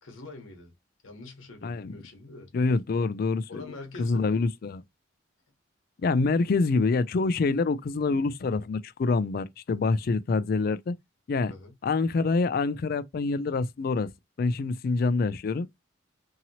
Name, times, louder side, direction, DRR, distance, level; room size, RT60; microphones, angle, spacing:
voice 1, 0.0-0.7 1.0-2.5 3.5-4.4 11.4-11.7, left 2 dB, 75° left, 1.0 m, -44 dB
voice 2, 1.6-1.9 2.5-4.8 6.0-10.9 11.3-11.5 11.8-14.1 14.4-15.7, left 3 dB, 45° left, 0.3 m, -26 dB
2.8 x 2.8 x 2.7 m
head